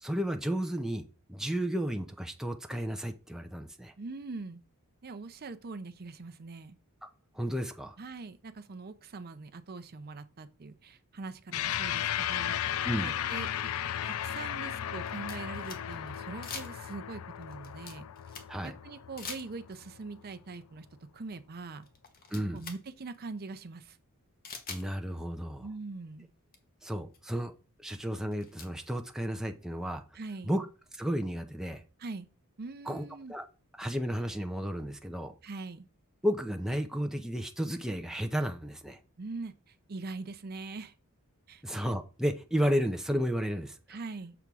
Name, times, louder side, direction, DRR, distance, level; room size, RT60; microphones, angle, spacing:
voice 1, 0.0-1.0 1.3-3.9 7.3-8.0 12.8-13.1 18.5-18.7 22.3-22.6 24.7-25.7 26.8-27.5 27.8-30.0 30.4-30.7 30.9-31.8 32.9-33.4 33.8-35.3 36.2-39.0 41.6-43.8, equal, ahead, 0.6 m, -32 dB
voice 2, 4.0-4.6 5.0-6.8 8.0-12.6 13.0-13.5 14.0-18.1 18.6-20.9 21.1-21.9 22.5-24.0 25.6-26.3 30.1-30.5 32.0-32.3 32.6-33.3 35.4-35.9 39.2-40.9 41.5-41.6 43.9-44.3, right 3 dB, 45° right, 0.6 m, -42 dB
sound 1, 11.5-20.2, left 10 dB, 70° left, 0.4 m, -35 dB
sound 2, 13.4-13.5 14.3-16.2 16.4-17.1 17.4-18.7 19.2-19.9 21.3-21.4 21.8-22.8 23.1-23.2 24.4-24.9 26.1-26.2 26.5-26.6 27.1-27.2 28.1-28.7, left 5 dB, 40° left, 1.2 m, -44 dB
6.9 x 3.6 x 6.1 m
head